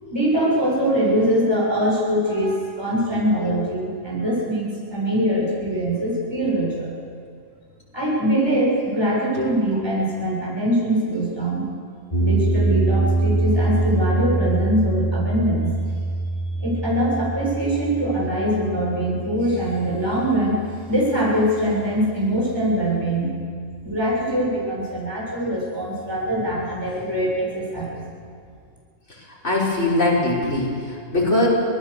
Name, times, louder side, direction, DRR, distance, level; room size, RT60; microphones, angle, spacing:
voice 1, 0.1-6.9 7.9-11.7 12.2-15.7 16.6-20.6 20.9-23.3 23.8-28.0, equal, 20° right, -5 dB, 7.2 m, -23 dB
sound 1, 12.1-22.3, right 2 dB, 30° left, 3.4 m, -25 dB
voice 2, 29.4-31.5, left 2 dB, 70° left, -4 dB, 6.0 m, -21 dB
25.5 x 18.5 x 6.8 m, 2.2 s
omnidirectional pair, 1.3 m